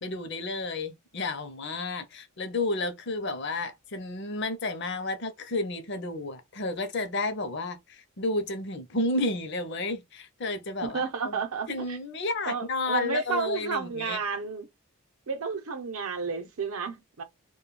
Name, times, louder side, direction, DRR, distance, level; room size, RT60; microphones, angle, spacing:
voice 1, 0.0-11.4 11.7-14.2, left 2 dB, 50° left, 0.6 m, -31 dB
voice 2, 10.8-12.0 12.5-14.7 15.3-17.2, right 5 dB, 75° right, 0.6 m, -31 dB
2.2 x 2.2 x 3.0 m
head